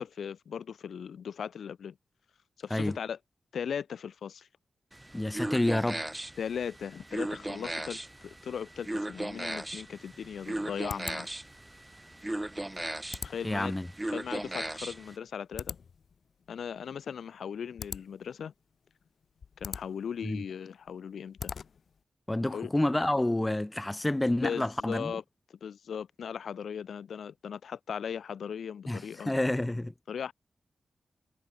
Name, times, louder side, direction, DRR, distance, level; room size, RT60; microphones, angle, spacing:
voice 1, 0.0-2.0 2.6-3.2 3.5-4.5 6.4-11.3 13.2-13.7 14.1-15.8 16.5-18.5 19.6-21.5 22.5-22.7 24.4-25.2 25.5-29.3 30.1-30.3, left 7 dB, 90° left, 3.1 m, -38 dB
sound 1, 4.9-15.2, right 1 dB, 15° right, 1.3 m, -37 dB
voice 2, 5.1-6.0 13.4-13.9 20.2-20.4 22.3-25.1 28.9-29.9, left 1 dB, 15° left, 2.3 m, -29 dB
sound 2, 9.8-22.0, left 6 dB, 75° left, 4.0 m, -45 dB
cardioid pair, 80°, 0 cm